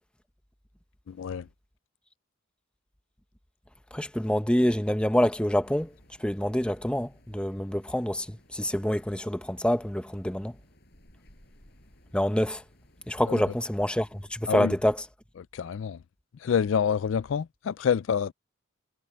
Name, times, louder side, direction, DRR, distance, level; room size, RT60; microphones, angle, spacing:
voice 1, 1.1-1.5 13.3-13.4 14.5-14.8 15.4-16.0 16.4-18.3, left 7 dB, 70° left, 0.3 m, -27 dB
voice 2, 3.9-5.9 6.2-10.5 12.1-12.6 13.1-15.0, equal, 5° left, 0.8 m, -26 dB
sound 1, 5.6-14.5, left 1 dB, 50° left, 7.8 m, -58 dB
head